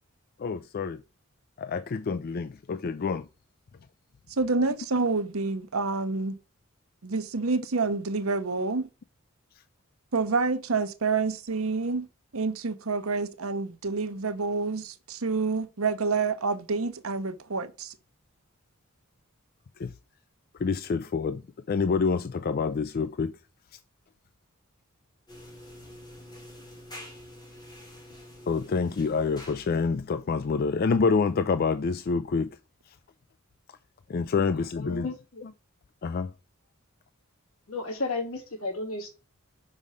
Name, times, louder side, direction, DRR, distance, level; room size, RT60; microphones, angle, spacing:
voice 1, 0.4-1.0 1.6-3.3 19.8-19.9 20.6-23.3 28.5-32.5 34.1-35.2 35.4-35.5 36.0-36.3, left 5 dB, 45° left, 0.4 m, -27 dB
voice 2, 4.3-6.4 7.0-8.9 10.1-12.1 12.3-17.9, right 4 dB, 75° right, 0.9 m, -28 dB
sound 1, 25.3-29.9, left 1 dB, 20° left, 3.1 m, -47 dB
voice 3, 34.8-35.4 37.7-39.1, left 2 dB, 80° left, 2.6 m, -33 dB
5.5 x 5.3 x 6.3 m
head